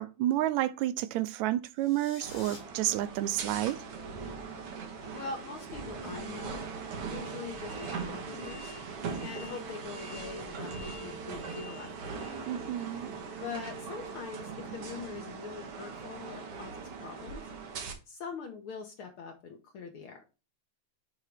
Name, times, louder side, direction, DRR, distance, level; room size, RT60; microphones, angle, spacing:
voice 1, 0.0-3.8 12.5-13.1, right 14 dB, 85° right, 1.9 m, -30 dB
sound 1, 1.7-2.6, left 4 dB, 80° left, 3.6 m, -49 dB
sound 2, 2.2-17.9, right 5 dB, 60° right, 2.1 m, -40 dB
voice 2, 5.1-6.6 7.0-8.7 9.2-12.3 13.4-17.4 18.1-20.2, left 5 dB, 65° left, 1.5 m, -43 dB
9.2 x 3.7 x 3.4 m
omnidirectional pair, 3.3 m